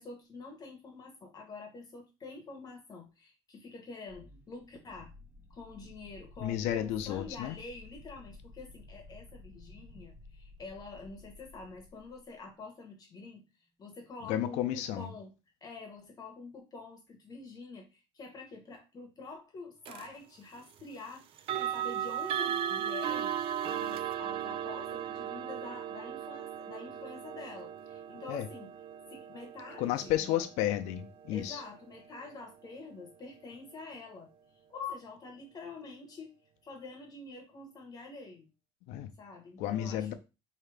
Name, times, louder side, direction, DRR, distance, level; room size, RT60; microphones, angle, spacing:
voice 1, 0.0-5.1 5.5-13.4 13.8-15.3 15.6-28.7 29.1-30.4 31.3-34.3 34.7-36.3 36.6-38.5 39.2-40.1, left 4 dB, 35° left, 1.1 m, -47 dB
sound 1, 4.1-12.3, left 2 dB, 15° right, 0.8 m, -54 dB
voice 2, 6.4-7.6 14.2-15.1 28.3-28.5 29.8-31.6 38.9-39.1 39.6-40.1, left 12 dB, 85° left, 0.5 m, -32 dB
sound 2, 19.8-20.1 21.4-32.2, right 10 dB, 50° right, 0.4 m, -37 dB
4.7 x 2.8 x 3.3 m
cardioid pair, 130°, 12 cm